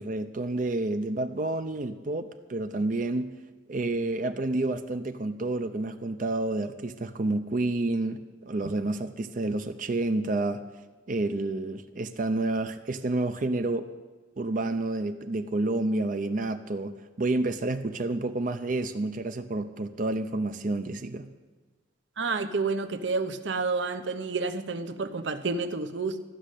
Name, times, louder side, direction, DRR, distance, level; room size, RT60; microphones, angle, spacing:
voice 1, 0.0-3.4 3.7-10.7 11.1-13.9 14.4-21.3, right 2 dB, 45° right, 8 dB, 0.5 m, -29 dB
voice 2, 22.2-26.2, right 4 dB, 75° right, 10 dB, 0.8 m, -30 dB
14.0 x 6.4 x 9.9 m, 1.3 s
head